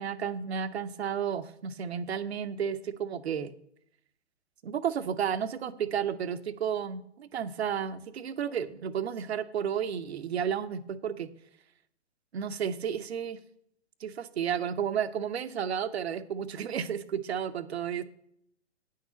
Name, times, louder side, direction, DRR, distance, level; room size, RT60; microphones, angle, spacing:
voice 1, 0.0-3.5 4.6-11.3 12.3-13.4 14.0-18.0, right 8 dB, 60° right, 12 dB, 0.8 m, -32 dB
9.5 x 6.6 x 6.9 m, 0.72 s
figure-of-eight pair, 115°, 36 cm